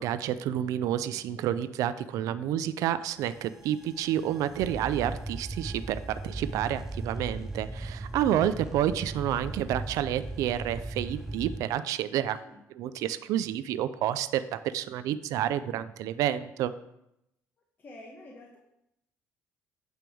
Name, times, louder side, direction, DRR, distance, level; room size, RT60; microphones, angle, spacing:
voice 1, 0.0-12.4 12.8-16.7, right 11 dB, 80° right, 13 dB, 0.4 m, -29 dB
voice 2, 2.2-2.6 12.4-12.6 17.8-18.6, left 1 dB, 35° left, -1 dB, 1.1 m, -48 dB
sound 1, 3.2-11.6, right 2 dB, 10° right, 0.3 m, -38 dB
9.2 x 3.4 x 6.2 m, 0.82 s
cardioid pair, 115°, 6 cm